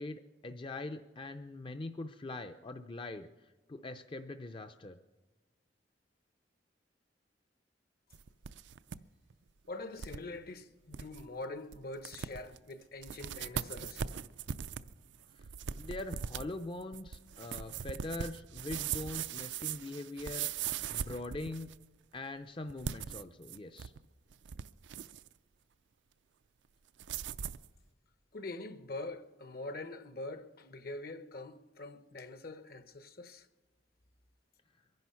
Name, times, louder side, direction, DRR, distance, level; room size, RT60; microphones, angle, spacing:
voice 1, 0.0-5.0 15.3-15.5 15.7-21.7 22.1-23.9, left 2 dB, 30° left, 0.5 m, -42 dB
sound 1, 8.1-9.0 9.3-9.4 10.0-10.2 10.6-10.7 10.9-11.2 11.7-11.8 12.0-12.6 13.0-21.8 22.7-24.0 24.3-25.3 27.0-27.7, right 8 dB, 90° right, 0.5 m, -40 dB
voice 2, 9.7-14.1 28.3-33.5, left 2 dB, 60° left, 1.0 m, -44 dB
23.0 x 10.5 x 5.7 m
head